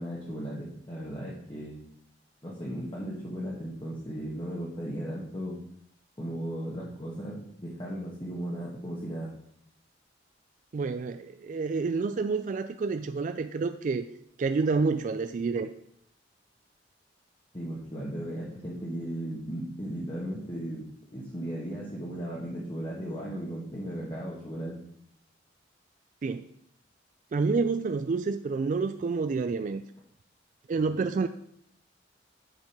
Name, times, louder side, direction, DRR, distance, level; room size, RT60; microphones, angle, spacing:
voice 1, 0.0-1.8 2.4-5.6 6.2-9.3 17.5-20.9 21.1-24.8, right 1 dB, 25° left, -5 dB, 1.4 m, -36 dB
voice 2, 10.7-14.1 14.4-15.7 26.2-26.5 27.3-29.8 30.7-31.3, right 4 dB, 45° right, 10 dB, 0.3 m, -28 dB
7.4 x 5.3 x 5.2 m, 0.68 s
head